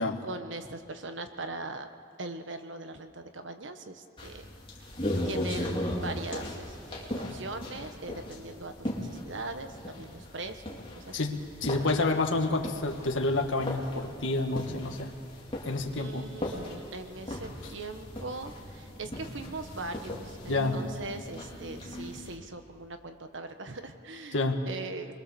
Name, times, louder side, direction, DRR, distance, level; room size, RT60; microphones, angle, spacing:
voice 1, 0.0-1.9 2.2-4.5 4.8-4.9 5.2-11.4 15.9-25.1, right 2 dB, 70° right, 7 dB, 1.3 m, -41 dB
sound 1, 4.2-22.4, left 1 dB, 25° left, 2.9 m, -38 dB
voice 2, 11.1-15.2 15.6-16.5 20.5-20.8 24.3-24.7, left 2 dB, 75° left, 3 dB, 1.5 m, -29 dB
25.0 x 22.0 x 7.0 m, 2.4 s
head